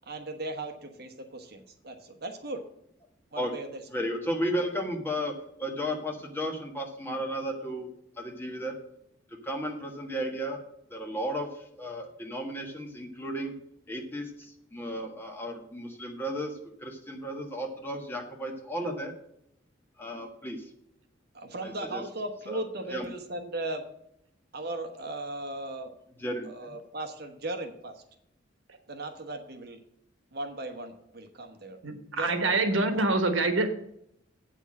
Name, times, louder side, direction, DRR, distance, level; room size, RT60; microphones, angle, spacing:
voice 1, 0.1-2.7 3.3-3.8 21.3-23.9 24.5-25.9 26.4-28.0 28.9-29.8 30.3-31.8 32.2-32.4 32.8-33.2, right 2 dB, 50° right, 6 dB, 1.1 m, -37 dB
voice 2, 3.9-7.9 8.2-8.7 9.4-10.6 10.9-13.5 13.9-19.1 20.0-20.6 21.6-22.0 22.5-22.6 22.9-23.1 26.2-26.5, equal, 10° left, 1 dB, 1.5 m, -34 dB
voice 3, 31.8-33.7, right 2 dB, 75° right, 7 dB, 1.4 m, -25 dB
8.3 x 6.4 x 7.5 m, 0.76 s
head